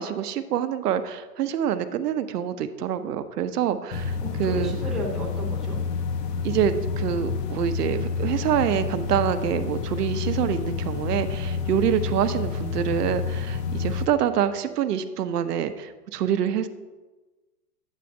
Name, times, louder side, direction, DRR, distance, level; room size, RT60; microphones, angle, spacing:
voice 1, 0.0-4.8 6.4-16.7, right 9 dB, 75° right, 10 dB, 0.7 m, -26 dB
sound 1, 3.9-14.1, left 5 dB, 85° left, 0.8 m, -29 dB
voice 2, 4.2-5.8, right 1 dB, ahead, -5 dB, 0.7 m, -34 dB
8.2 x 8.2 x 2.6 m, 1.2 s
hypercardioid pair, 140°, 47 cm